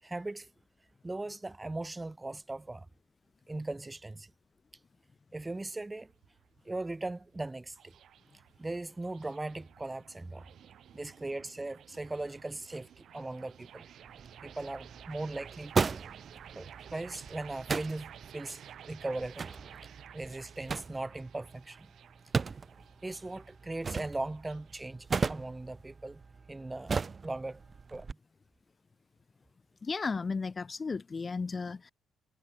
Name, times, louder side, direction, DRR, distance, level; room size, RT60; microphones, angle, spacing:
voice 1, 0.0-0.5 1.0-2.9 3.5-4.3 5.3-6.1 6.6-7.9 8.6-10.5 10.9-13.9 14.4-15.9 16.5-18.6 18.9-21.9 23.0-26.2 26.5-27.6 27.9-28.1, right 2 dB, 15° right, 4.7 m, -39 dB
sound 1, 5.8-24.8, right 10 dB, 65° right, 5.0 m, -53 dB
sound 2, 14.0-28.1, right 5 dB, 35° right, 2.3 m, -38 dB
voice 2, 29.8-31.9, left 4 dB, 30° left, 1.6 m, -34 dB
cardioid pair, 90°, 0 cm